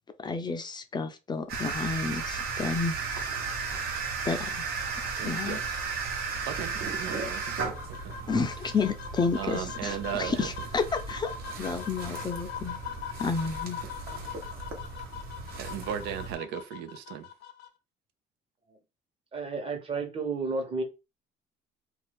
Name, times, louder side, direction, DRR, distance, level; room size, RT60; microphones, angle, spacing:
voice 1, 0.2-3.0 4.2-4.6 5.2-5.6 8.3-11.3 11.6-12.8 13.2-13.8, left 4 dB, 25° left, 0.4 m, -30 dB
sound 1, 1.5-16.3, right 5 dB, 70° right, 1.1 m, -35 dB
voice 2, 5.2-5.6 6.4-6.7 7.0-8.1 9.3-10.5 15.6-17.3, right 9 dB, 90° right, 0.6 m, -36 dB
sound 2, 6.7-17.7, left 7 dB, 75° left, 0.6 m, -42 dB
voice 3, 19.3-20.8, right 3 dB, 35° right, 1.0 m, -31 dB
2.6 x 2.3 x 3.4 m
cardioid pair, 110°, 17 cm